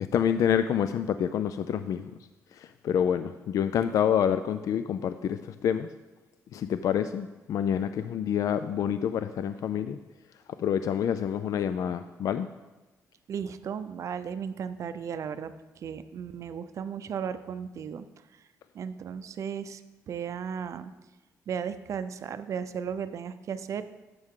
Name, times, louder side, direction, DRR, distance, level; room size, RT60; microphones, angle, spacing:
voice 1, 0.0-2.1 2.5-5.9 6.5-10.0 10.6-12.5, left 8 dB, 65° left, 11 dB, 0.4 m, -27 dB
voice 2, 13.3-18.1 18.3-18.4 18.7-19.8 20.1-20.9 21.5-23.8, right 7 dB, 55° right, 11 dB, 0.6 m, -35 dB
11.0 x 7.7 x 3.7 m, 1.1 s
cardioid pair, 110°, 6 cm